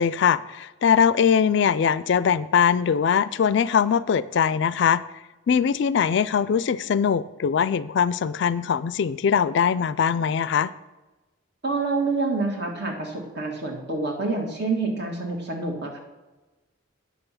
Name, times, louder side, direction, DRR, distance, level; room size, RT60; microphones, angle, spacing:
voice 1, 0.0-5.0 5.5-10.7, left 7 dB, 60° left, 17 dB, 0.3 m, -21 dB
voice 2, 11.6-16.0, right 3 dB, 55° right, 2 dB, 1.9 m, -27 dB
9.6 x 6.8 x 5.6 m, 1.1 s
head